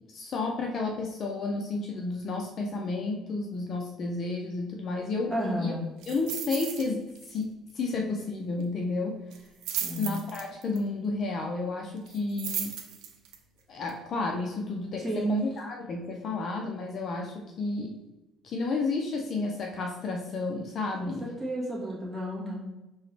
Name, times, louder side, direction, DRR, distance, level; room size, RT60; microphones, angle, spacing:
voice 1, 0.1-5.3 5.6-5.7 6.1-7.5 7.7-9.2 10.0-12.7 13.7-18.0 18.4-21.3, left 3 dB, 40° left, 1 dB, 0.5 m, -31 dB
voice 2, 5.3-5.9 9.8-10.1 15.0-15.3 21.0-22.7, right 1 dB, 15° right, -6 dB, 1.5 m, -32 dB
sound 1, 6.0-6.9 7.2-7.4 7.7-7.8 9.3-10.8 12.1-13.4 13.9-14.0, right 9 dB, 80° right, 0.6 m, -35 dB
5.4 x 2.9 x 3.3 m, 1.0 s
cardioid pair, 155°, 0 cm